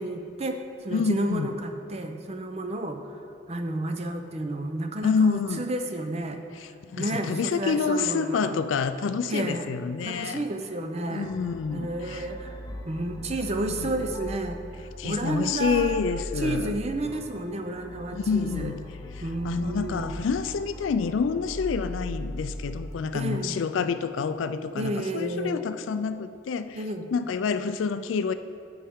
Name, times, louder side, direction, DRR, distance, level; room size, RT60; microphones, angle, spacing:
voice 1, 0.0-3.0 3.5-6.4 7.0-8.5 9.3-9.7 10.0-11.3 11.7-12.6 12.9-14.6 15.0-16.0 16.4-18.7 19.2-20.2 23.1-23.6 24.8-25.6 26.7-27.1, right 1 dB, 35° right, 6 dB, 0.6 m, -31 dB
voice 2, 0.9-1.5 5.0-5.6 6.5-10.4 11.1-12.3 13.7-13.9 15.0-16.7 18.1-18.9 19.4-26.8 27.1-28.3, left 5 dB, 80° left, 11 dB, 0.4 m, -28 dB
sound 1, 11.2-22.9, left 1 dB, 20° left, 0.6 m, -39 dB
9.8 x 8.7 x 3.6 m, 2.6 s
head